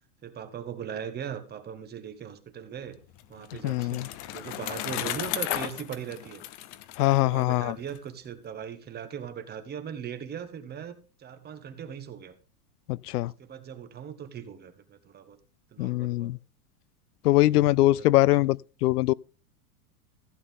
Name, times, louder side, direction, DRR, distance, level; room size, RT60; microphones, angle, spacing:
voice 1, 0.2-3.0 3.3-6.4 7.1-12.3 13.2-15.4 15.7-16.3 17.8-18.1 18.3-18.4, right 8 dB, 20° right, 1.3 m, -39 dB
Bicycle, 2.9-8.0, left 14 dB, 40° left, 0.9 m, -35 dB
voice 2, 3.6-4.1 7.0-7.8 12.9-13.3 15.8-16.4 17.2-19.1, left 17 dB, 85° left, 0.6 m, -23 dB
15.0 x 7.9 x 3.7 m
supercardioid pair, 135°, 45 cm